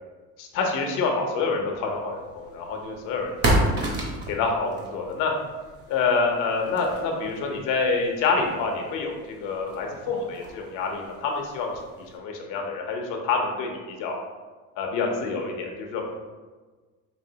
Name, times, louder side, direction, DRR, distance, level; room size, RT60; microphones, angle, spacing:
voice 1, 0.4-3.7 4.3-5.3 5.9-11.7 12.0-14.2 14.8-16.1, left 4 dB, 70° left, 1 dB, 0.9 m, -27 dB
sound 1, 1.8-12.2, right 1 dB, 35° right, 0.9 m, -32 dB
5.1 x 2.8 x 2.8 m, 1.4 s
cardioid pair, 135°, 32 cm